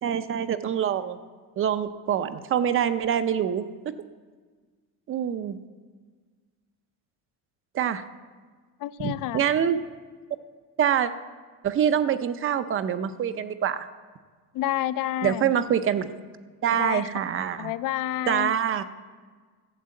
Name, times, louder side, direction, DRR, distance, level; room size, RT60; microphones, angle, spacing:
voice 1, 0.0-1.2 1.6-3.9 5.1-5.6 7.7-8.0 9.0-9.9 10.8-11.1 11.6-13.9 15.2-16.1 16.6-17.7 18.3-18.8, right 9 dB, 35° right, 12 dB, 0.6 m, -25 dB
voice 2, 8.8-9.4 14.5-15.5 16.7-17.1 17.6-18.5, left 13 dB, 60° left, 16 dB, 0.6 m, -29 dB
13.0 x 8.0 x 7.6 m, 1.5 s
cardioid pair, 155°, 38 cm